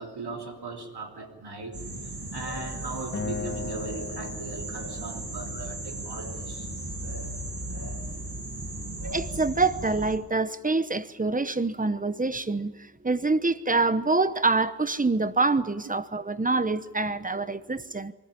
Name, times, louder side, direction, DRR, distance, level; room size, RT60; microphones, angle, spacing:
voice 1, 0.0-1.8 2.3-6.7, right 3 dB, 85° right, 3.3 m, -38 dB
sound 1, 1.7-10.2, right 1 dB, 65° right, 7.0 m, -36 dB
Acoustic guitar, 3.1-6.4, left 4 dB, 30° left, 1.0 m, -39 dB
voice 2, 9.1-12.7 13.0-18.1, right 3 dB, 20° right, 0.9 m, -26 dB
24.5 x 14.5 x 9.8 m
wide cardioid pair, 105°, 38 cm